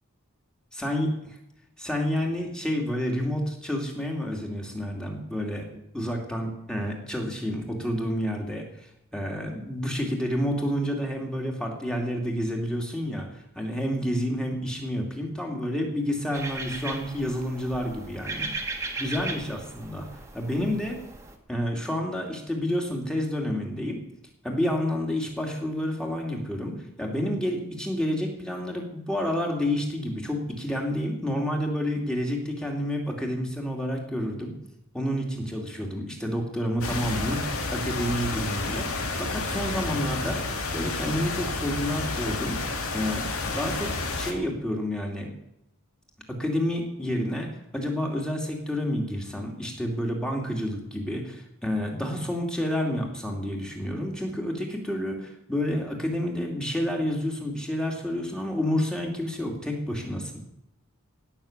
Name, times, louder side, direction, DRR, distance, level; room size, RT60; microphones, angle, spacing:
voice 1, 0.8-1.1 1.8-5.7 5.9-8.7 9.1-13.3 13.5-18.5 19.0-20.1 20.3-21.0 21.5-24.0 24.4-34.5 34.9-42.6 42.9-45.3 46.3-60.4, equal, 5° left, 1 dB, 2.5 m, -29 dB
sound 1, 16.3-21.4, right 3 dB, 15° right, 1.5 m, -37 dB
sound 2, 36.8-44.3, left 3 dB, 75° left, 2.3 m, -30 dB
17.0 x 6.7 x 8.7 m, 0.80 s
head